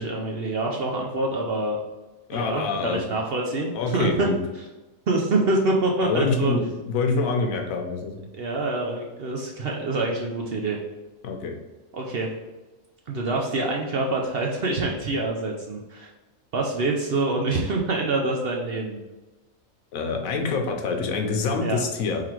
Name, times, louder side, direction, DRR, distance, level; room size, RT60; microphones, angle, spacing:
voice 1, 0.0-1.8 2.3-4.3 5.1-6.6 8.4-10.8 11.9-12.3 13.1-16.1 16.5-19.0 21.6-21.8, right 2 dB, 60° right, 0 dB, 0.7 m, -26 dB
voice 2, 2.3-3.1 3.7-4.4 6.0-8.3 11.2-11.6 19.9-22.2, left 4 dB, 80° left, 3 dB, 1.1 m, -26 dB
3.8 x 3.2 x 4.4 m, 1.1 s
omnidirectional pair, 1.4 m